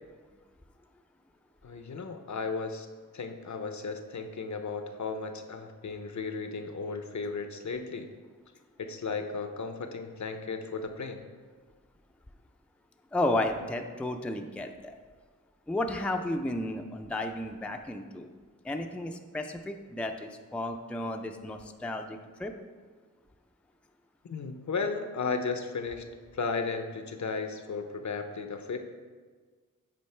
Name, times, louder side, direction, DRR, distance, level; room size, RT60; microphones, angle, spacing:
voice 1, 1.6-2.9 3.1-8.1 8.8-11.2 24.3-26.1 26.3-28.8, left 4 dB, 55° left, 7 dB, 0.6 m, -35 dB
voice 2, 13.1-14.9 15.7-18.3 18.6-22.5, left 1 dB, 5° left, 4 dB, 0.4 m, -33 dB
8.5 x 4.2 x 3.3 m, 1.5 s
cardioid pair, 40°, 34 cm